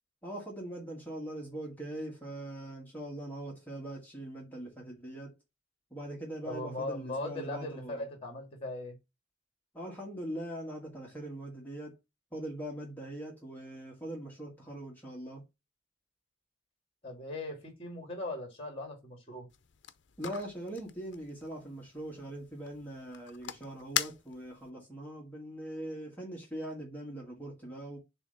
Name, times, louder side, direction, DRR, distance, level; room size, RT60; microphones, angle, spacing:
voice 1, 0.2-5.3 5.9-8.0 9.7-12.0 12.3-15.4 20.2-28.0, right 1 dB, 10° left, 1.5 m, -41 dB
voice 2, 6.5-9.0 17.0-19.5, left 2 dB, 30° left, 2.5 m, -39 dB
sound 1, 19.5-24.7, left 10 dB, 65° left, 0.6 m, -41 dB
7.0 x 2.9 x 5.5 m
head